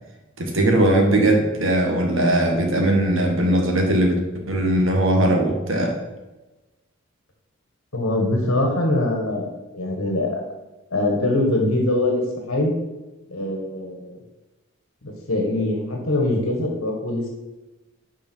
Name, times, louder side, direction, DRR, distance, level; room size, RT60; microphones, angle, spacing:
voice 1, 0.4-4.2 4.5-5.9, right 1 dB, 65° right, 2 dB, 1.8 m, -19 dB
voice 2, 7.9-10.4 10.9-12.7 13.3-14.2 15.0-17.3, left 1 dB, 75° left, 1 dB, 1.5 m, -23 dB
11.5 x 5.0 x 4.6 m, 1.1 s
head